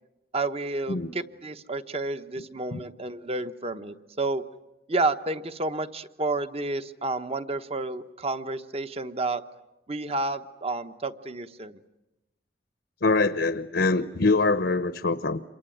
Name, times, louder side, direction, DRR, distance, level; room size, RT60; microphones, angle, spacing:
voice 1, 0.3-4.4 4.9-9.4 9.9-11.8, right 2 dB, 30° right, 10 dB, 1.0 m, -30 dB
voice 2, 13.0-15.4, left 3 dB, 65° left, 12 dB, 0.9 m, -24 dB
28.0 x 23.5 x 9.2 m, 0.98 s
head